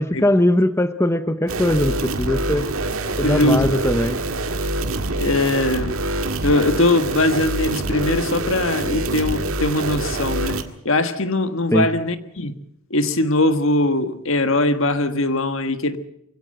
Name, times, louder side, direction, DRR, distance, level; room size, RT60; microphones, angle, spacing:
voice 1, 0.0-2.7 3.2-4.2 11.7-11.9, left 1 dB, 10° left, 0.7 m, -20 dB
sound 1, 1.5-10.6, right 2 dB, 70° right, 1.8 m, -25 dB
voice 2, 3.2-3.6 5.2-6.0 6.4-10.6 10.8-12.5 12.9-16.0, left 2 dB, 60° left, 1.5 m, -21 dB
23.5 x 16.5 x 7.8 m
head